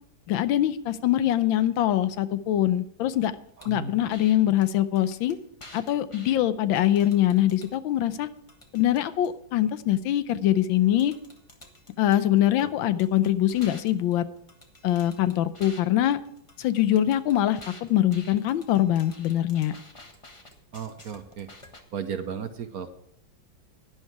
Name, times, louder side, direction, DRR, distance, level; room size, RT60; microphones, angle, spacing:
voice 1, 0.3-3.3 3.6-5.4 5.7-8.3 8.7-11.1 12.0-14.2 14.8-16.2 16.6-19.7, left 12 dB, 85° left, 13 dB, 1.4 m, -23 dB
sound 1, 3.6-3.7 4.1-4.3 4.6-4.7 5.0-6.4 6.8-7.7 8.1-9.3 10.6-10.7 11.0-12.6 13.0-15.8 16.1-21.8, left 1 dB, 20° left, 1.2 m, -49 dB
voice 2, 3.6-4.1 12.6-12.7 20.7-21.5 21.9-22.9, right 7 dB, 60° right, 8 dB, 1.2 m, -35 dB
11.0 x 10.5 x 4.7 m, 0.72 s
omnidirectional pair, 2.1 m